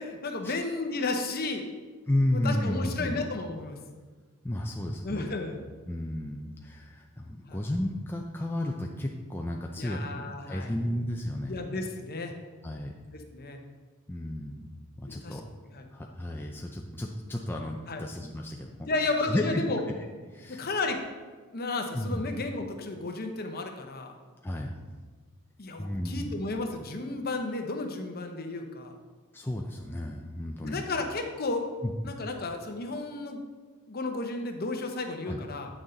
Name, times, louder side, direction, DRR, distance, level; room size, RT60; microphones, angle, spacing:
voice 1, 0.0-1.6 2.3-3.8 5.0-5.6 7.5-7.6 9.8-10.7 11.5-12.3 13.3-13.6 15.1-15.4 15.7-15.8 17.9-18.0 18.9-19.8 20.5-21.0 21.5-24.1 25.6-28.9 30.6-31.7 32.0-33.4 33.9-35.7, left 3 dB, 45° left, 4 dB, 0.9 m, -33 dB
voice 2, 2.1-3.2 4.4-5.4 5.9-10.0 10.4-11.6 12.6-12.9 14.1-15.4 15.9-19.6 20.3-20.7 21.9-22.3 24.4-24.7 25.8-26.4 29.3-30.9 31.8-32.1 35.2-35.4, left 1 dB, 10° left, 0 dB, 0.4 m, -33 dB
9.0 x 6.2 x 3.9 m, 1.4 s
head